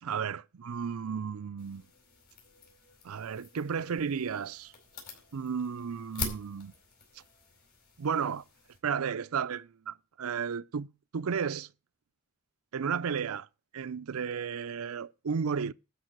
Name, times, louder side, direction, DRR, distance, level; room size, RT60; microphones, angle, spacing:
voice 1, 0.0-1.8 3.0-4.7 5.3-6.7 8.0-8.4 8.8-10.9 11.1-11.7 12.7-13.5 13.7-15.7, right 6 dB, 80° right, 0.5 m, -33 dB
sound 1, 1.6-8.8, left 4 dB, 45° left, 4.8 m, -45 dB
12.5 x 5.5 x 7.7 m
head